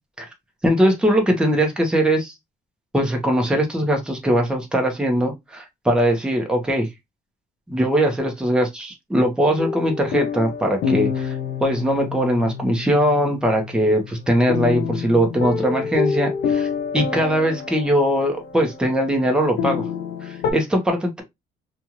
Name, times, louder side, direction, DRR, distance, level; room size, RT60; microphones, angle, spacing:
voice 1, 0.6-2.3 2.9-6.9 7.7-16.7 16.9-19.8 20.2-21.2, equal, 5° right, 1.0 m, -20 dB
sound 1, 9.6-20.5, left 6 dB, 75° left, 0.5 m, -28 dB
2.6 x 2.5 x 3.0 m
cardioid pair, 110°, 17 cm